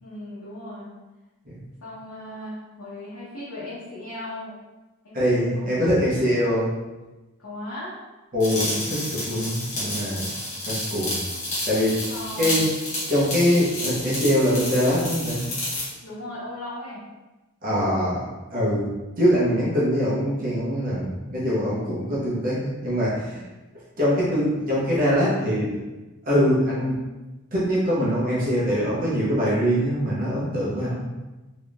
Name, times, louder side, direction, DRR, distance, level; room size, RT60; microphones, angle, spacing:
voice 1, 0.0-0.9 1.8-4.5 5.0-6.2 7.4-8.0 12.1-12.6 16.0-17.0 30.8-31.1, left 1 dB, 75° left, -10 dB, 1.0 m, -37 dB
voice 2, 5.1-6.7 8.3-10.3 10.6-11.2 11.7-12.0 12.4-12.7 13.1-15.4 17.6-18.2 18.5-18.9 19.2-23.4 24.0-25.8 26.2-27.0 27.5-31.0, equal, 40° right, -8 dB, 1.0 m, -23 dB
sound 1, 8.4-15.9, left 1 dB, 35° left, 1.1 m, -30 dB
3.6 x 3.1 x 2.5 m, 1.1 s
head